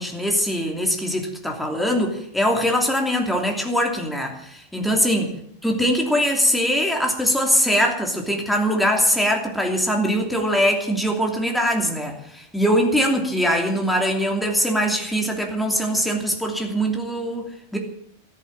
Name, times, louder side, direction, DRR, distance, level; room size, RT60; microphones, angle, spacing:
voice 1, 0.0-5.3 5.6-17.8, equal, ahead, 1 dB, 2.9 m, -22 dB
14.0 x 10.5 x 8.7 m, 0.66 s
omnidirectional pair, 1.4 m